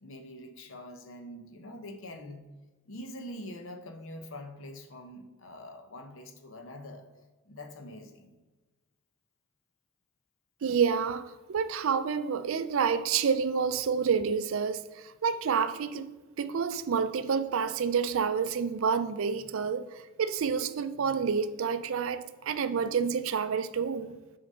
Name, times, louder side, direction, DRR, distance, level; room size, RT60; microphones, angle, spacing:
voice 1, 0.0-2.5 2.9-7.1 7.4-8.3, left 1 dB, 60° left, 0.8 m, -44 dB
voice 2, 10.6-11.2 11.5-16.1 16.4-24.1, right 6 dB, 60° right, 0.4 m, -29 dB
6.4 x 4.0 x 5.3 m
head